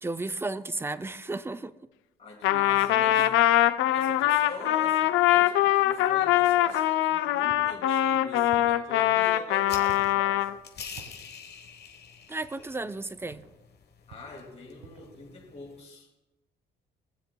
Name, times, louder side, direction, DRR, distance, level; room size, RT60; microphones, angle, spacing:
voice 1, 0.0-1.7 12.3-13.4, right 2 dB, 10° right, 0.4 m, -33 dB
voice 2, 2.2-3.3 3.9-10.5 14.1-16.1, left 3 dB, 35° left, 2.3 m, -44 dB
Trumpet, 2.4-10.5, left 13 dB, 90° left, 0.5 m, -23 dB
sound 1, 7.5-7.7 8.5-8.8 9.9-10.2 11.0-11.2 12.4-12.7 13.3-13.6 14.1-14.4 14.8-15.1, right 6 dB, 90° right, 1.5 m, -49 dB
sound 2, 9.6-15.8, left 6 dB, 55° left, 1.1 m, -46 dB
18.0 x 7.3 x 2.3 m
cardioid pair, 90°, 20 cm